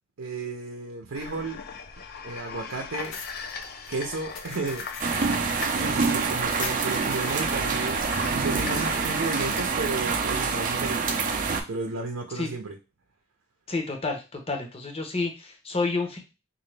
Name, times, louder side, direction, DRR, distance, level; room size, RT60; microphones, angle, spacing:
voice 1, 0.2-1.6 2.2-3.1 3.9-5.1 5.7-8.1 8.3-11.2 11.7-12.8, right 3 dB, 85° right, 2 dB, 0.6 m, -33 dB
sound 1, 1.1-9.7, left 5 dB, 50° left, 0.4 m, -39 dB
sound 2, 2.9-8.1, left 5 dB, 85° left, 0.7 m, -42 dB
sound 3, 5.0-11.6, right 4 dB, 40° right, 0.5 m, -26 dB
voice 2, 13.7-16.2, left 3 dB, 30° left, 2 dB, 0.8 m, -29 dB
3.8 x 2.6 x 3.3 m, 0.29 s
head